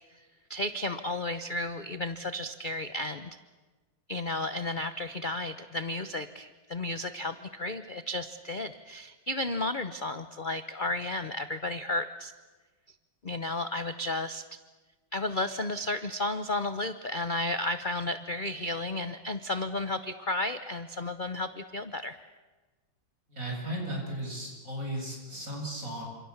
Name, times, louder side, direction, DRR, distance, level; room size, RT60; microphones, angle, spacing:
voice 1, 0.5-3.3 4.1-12.3 13.2-14.4 15.1-22.2, left 2 dB, 45° left, 11 dB, 0.6 m, -33 dB
voice 2, 23.3-26.0, right 1 dB, 40° right, 0 dB, 8.4 m, -35 dB
29.5 x 27.0 x 7.2 m, 1.3 s
omnidirectional pair, 2.1 m